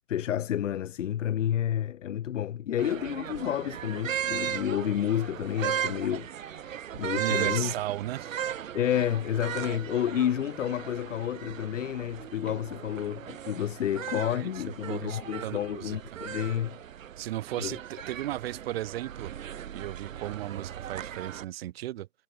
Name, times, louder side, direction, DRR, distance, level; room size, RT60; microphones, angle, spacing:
voice 1, 0.1-7.7 8.7-16.8 17.6-17.8, left 10 dB, 50° left, 1.1 m, -30 dB
sound 1, 2.8-21.4, right 9 dB, 55° right, 1.7 m, -37 dB
voice 2, 7.1-8.4 14.3-14.5 14.8-16.0 17.2-19.3 19.7-22.1, right 14 dB, 40° right, 1.5 m, -35 dB
figure-of-eight pair, 120°, 46 cm